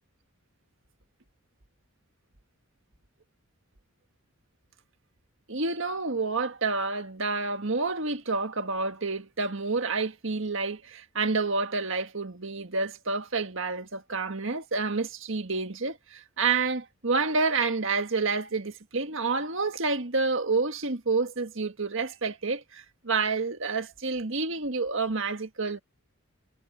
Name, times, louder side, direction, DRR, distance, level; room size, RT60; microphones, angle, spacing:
voice 1, 5.5-25.8, right 4 dB, 60° right, 1.8 m, -29 dB
head